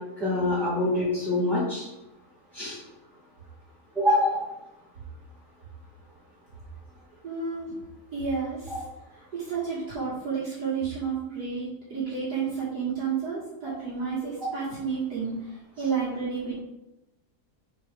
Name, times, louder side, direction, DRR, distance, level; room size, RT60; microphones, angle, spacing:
voice 1, 0.2-1.9 2.5-2.8 4.0-4.4, left 1 dB, ahead, -11 dB, 1.9 m, -25 dB
voice 2, 7.2-7.7 8.1-8.7 9.3-15.4 15.8-16.6, right 5 dB, 70° right, -9 dB, 2.3 m, -31 dB
4.6 x 4.5 x 5.1 m, 0.94 s
omnidirectional pair, 1.8 m